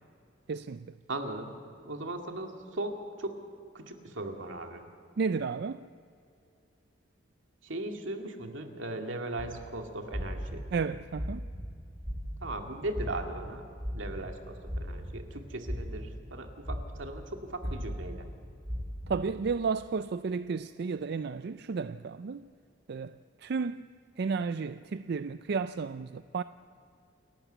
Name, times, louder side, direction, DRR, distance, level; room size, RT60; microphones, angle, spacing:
voice 1, 0.5-0.9 5.2-5.9 10.7-11.4 19.1-22.5 22.9-23.9 24.2-26.4, right 5 dB, 60° right, 0.4 m, -33 dB
voice 2, 1.1-1.5 1.8-3.3 3.7-4.8 7.6-10.6 12.4-18.3, right 2 dB, 85° right, 2.2 m, -38 dB
sound 1, 9.4-9.6 10.1-10.6 11.1-11.6 12.0-12.5 12.9-13.4 13.8-14.2 14.6-15.3 15.6-16.1 16.6-17.1 17.6-18.1 18.6-19.1, equal, 25° right, 5.4 m, -35 dB
28.5 x 12.0 x 8.0 m
head